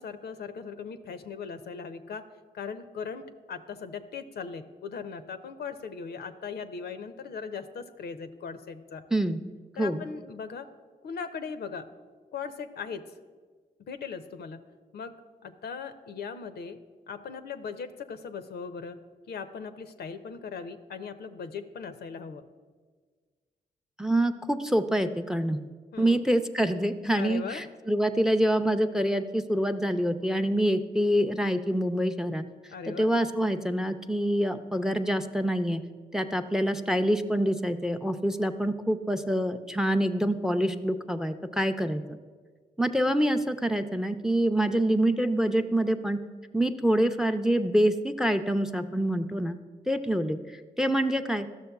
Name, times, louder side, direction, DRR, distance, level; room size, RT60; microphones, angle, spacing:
voice 1, 0.0-2.2 2.5-9.0 9.8-10.7 11.0-11.9 12.3-13.1 13.9-14.6 14.9-15.1 15.4-16.8 17.1-19.0 19.3-22.4 25.9-26.2 27.1-27.6 32.7-33.1, left 6 dB, 65° left, 9 dB, 0.5 m, -39 dB
voice 2, 24.0-25.6 26.0-32.4 32.9-35.8 36.1-42.0 42.8-46.2 46.5-49.6 49.9-50.4 50.8-51.5, right 1 dB, 5° right, 10 dB, 0.5 m, -26 dB
12.5 x 6.3 x 2.3 m, 1.5 s
supercardioid pair, 45°, 18 cm